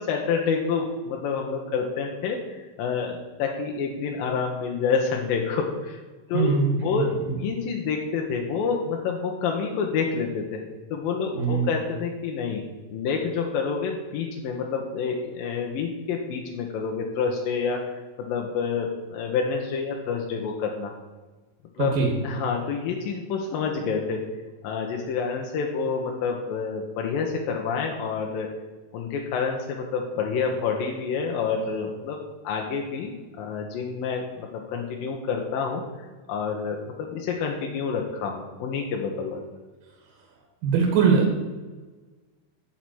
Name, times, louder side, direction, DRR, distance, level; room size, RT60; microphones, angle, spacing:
voice 1, 0.0-6.0 6.3-7.1 7.4-10.6 10.9-12.6 12.9-17.8 18.2-20.9 21.8-22.0 22.2-24.2 24.6-28.5 28.9-33.1 33.4-35.8 36.3-39.4, left 5 dB, 90° left, 1 dB, 2.8 m, -28 dB
voice 2, 6.3-7.4 11.4-11.7 21.8-22.1 40.6-41.3, right 5 dB, 75° right, 0 dB, 3.3 m, -22 dB
10.5 x 5.6 x 7.8 m, 1.3 s
omnidirectional pair, 3.9 m